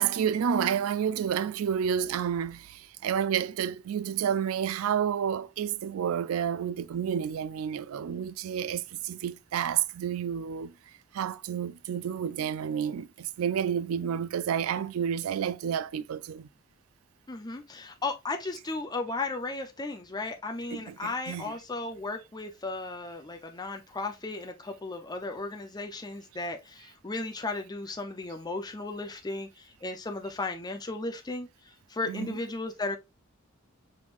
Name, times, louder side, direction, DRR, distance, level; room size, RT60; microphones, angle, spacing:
voice 1, 0.0-10.7 11.1-16.5 20.7-21.5 32.0-32.4, right 8 dB, 90° right, 0.4 m, -30 dB
voice 2, 17.3-31.5 31.9-33.0, left 3 dB, 20° left, 0.6 m, -35 dB
5.3 x 3.2 x 2.5 m
head